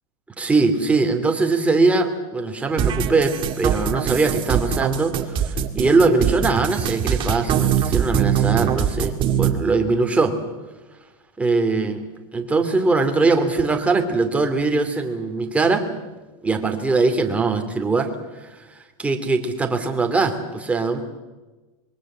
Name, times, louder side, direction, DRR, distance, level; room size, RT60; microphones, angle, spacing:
voice 1, 0.4-10.4 11.4-12.1 12.3-15.9 16.4-18.1 18.4-18.5 19.0-21.0, right 3 dB, 5° right, 4 dB, 2.7 m, -21 dB
sound 1, 2.8-9.5, right 9 dB, 25° right, 2.2 m, -22 dB
25.5 x 22.5 x 7.4 m, 1.2 s
supercardioid pair, 155°, 18 cm